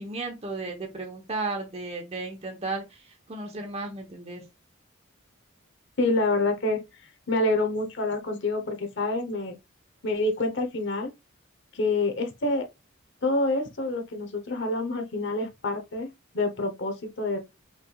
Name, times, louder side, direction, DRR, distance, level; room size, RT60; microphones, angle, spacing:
voice 1, 0.0-3.0 3.3-4.4, right 3 dB, 30° right, 1.1 m, -34 dB
voice 2, 6.0-6.8 7.3-9.6 10.0-11.1 11.7-12.7 13.2-16.1 16.3-17.4, left 2 dB, 60° left, 0.9 m, -27 dB
5.8 x 3.3 x 2.4 m
head